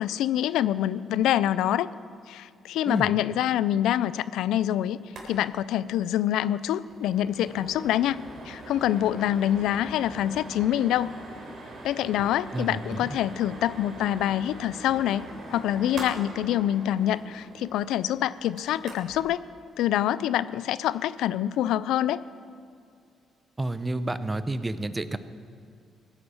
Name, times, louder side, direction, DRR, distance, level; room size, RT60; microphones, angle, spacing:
voice 1, 0.0-1.9 2.3-5.0 5.3-11.1 11.8-19.4 19.8-22.2, left 12 dB, 85° left, 17 dB, 0.3 m, -26 dB
sound 1, 5.0-5.3 5.6-5.7 6.0-6.2 6.5-19.2, right 2 dB, 60° right, 3.6 m, -43 dB
voice 2, 12.5-13.0 23.6-25.2, right 2 dB, 20° right, 12 dB, 0.7 m, -30 dB
17.0 x 10.0 x 7.0 m, 2.3 s
cardioid pair, 90°, 0 cm